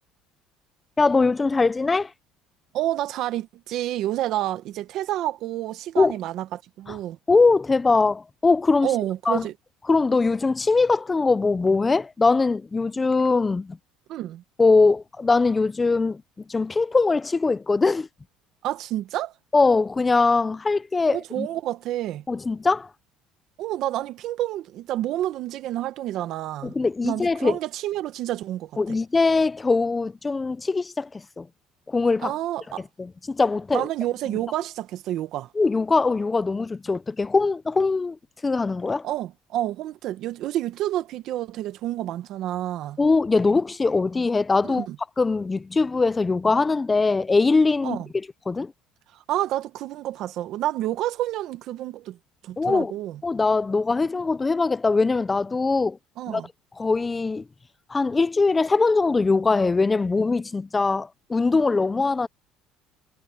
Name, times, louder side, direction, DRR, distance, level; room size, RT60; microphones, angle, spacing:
voice 1, 1.0-2.1 6.0-6.1 6.9-7.0 7.3-8.9 9.3-9.4 9.9-13.8 14.6-16.2 16.5-18.1 19.5-21.5 22.3-22.9 26.6-27.6 28.8-31.5 31.9-32.3 33.0-33.9 35.6-38.2 38.4-39.1 43.0-44.9 45.2-48.0 48.5-48.7 52.6-52.9 53.2-56.0 56.3-56.4 56.8-57.4 57.9-62.3, left 3 dB, 20° left, 0.6 m, -21 dB
voice 2, 2.7-7.2 8.8-9.5 14.1-14.4 18.6-19.3 21.1-22.2 23.6-26.7 27.0-29.0 32.2-32.8 33.7-35.5 39.0-43.0 44.6-45.0 47.8-48.1 49.1-52.2 52.4-53.2 56.2-56.5, right 13 dB, 65° right, 1.5 m, -29 dB
cardioid pair, 115°, 0 cm